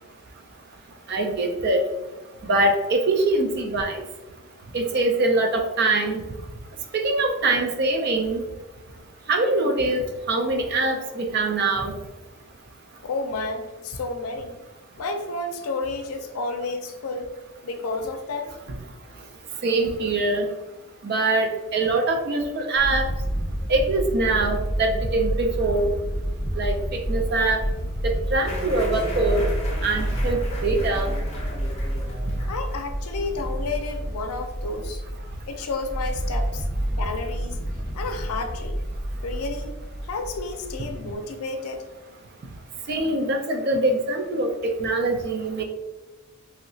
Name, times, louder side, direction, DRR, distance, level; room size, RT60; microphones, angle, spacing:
voice 1, 1.1-1.8 2.5-4.0 4.7-6.2 6.9-8.4 9.3-12.0 19.6-20.5 21.0-23.1 23.7-25.9 26.6-26.8 27.1-27.6 28.0-29.4 29.8-31.1 42.9-45.6, right 2 dB, 45° right, 4 dB, 0.4 m, -23 dB
voice 2, 13.0-14.6 15.0-17.3 17.6-18.5 32.5-35.0 35.5-36.6 37.0-37.6 37.9-38.8 39.2-39.8 40.1-41.8, left 3 dB, 80° left, 6 dB, 0.4 m, -31 dB
sound 1, 22.8-41.2, equal, 10° right, 1.3 m, -29 dB
sound 2, 28.4-34.1, left 1 dB, 30° left, 0.6 m, -38 dB
3.1 x 2.8 x 2.7 m, 1.1 s
head